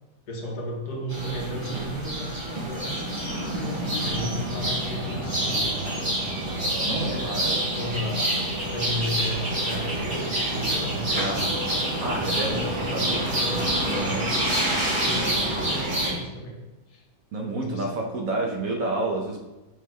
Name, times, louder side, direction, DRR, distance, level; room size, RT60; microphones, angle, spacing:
voice 1, 0.3-5.8 6.8-11.5 12.1-14.4 15.0-17.0 17.5-18.1, equal, 65° left, 0 dB, 1.5 m, -35 dB
sound 1, 1.1-16.1, right 1 dB, 30° right, 1.3 m, -27 dB
voice 2, 6.8-7.6 11.1-11.5 12.0-13.2 13.8-14.2 17.3-19.4, right 2 dB, 60° right, 1 dB, 1.2 m, -29 dB
6.2 x 4.0 x 4.4 m, 1.0 s
omnidirectional pair, 1.8 m